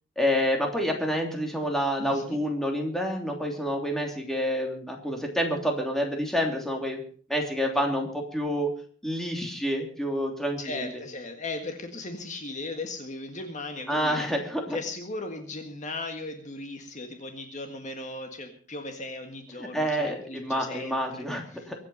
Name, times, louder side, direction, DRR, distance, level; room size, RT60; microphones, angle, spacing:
voice 1, 0.2-7.0 7.3-8.7 9.0-10.8 13.9-14.8 19.7-21.7, equal, ahead, 2 dB, 3.0 m, -28 dB
voice 2, 2.0-2.4 10.6-14.2 14.7-21.7, left 2 dB, 40° left, 5 dB, 1.7 m, -37 dB
23.5 x 8.8 x 5.5 m, 0.43 s
head